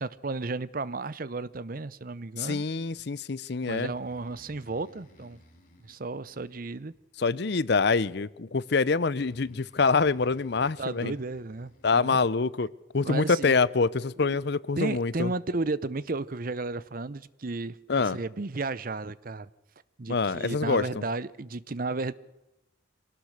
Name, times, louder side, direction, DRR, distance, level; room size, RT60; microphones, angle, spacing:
voice 1, 0.0-2.6 3.6-5.4 5.8-6.9 10.8-12.2 13.0-13.6 14.2-14.4 14.8-19.5 20.0-22.1, right 3 dB, 45° right, 0.7 m, -33 dB
voice 2, 2.4-3.9 7.2-11.1 11.8-12.7 12.9-15.3 17.9-18.2 20.1-21.0, left 4 dB, 60° left, 0.6 m, -25 dB
Breathing, 3.6-7.3 9.1-12.3, equal, 45° left, 3.7 m, -58 dB
24.5 x 18.5 x 6.5 m
head